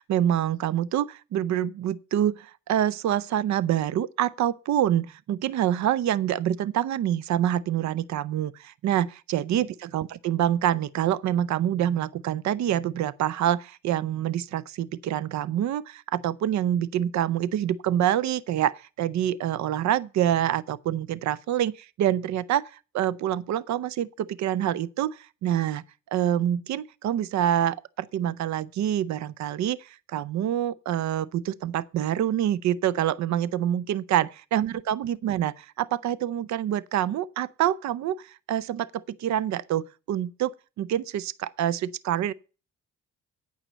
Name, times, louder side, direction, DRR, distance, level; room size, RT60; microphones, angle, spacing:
voice 1, 0.0-25.8 26.1-40.5 40.8-42.3, right 11 dB, 65° right, 0.6 m, -26 dB
9.0 x 5.6 x 7.9 m
cardioid pair, 90°, 30 cm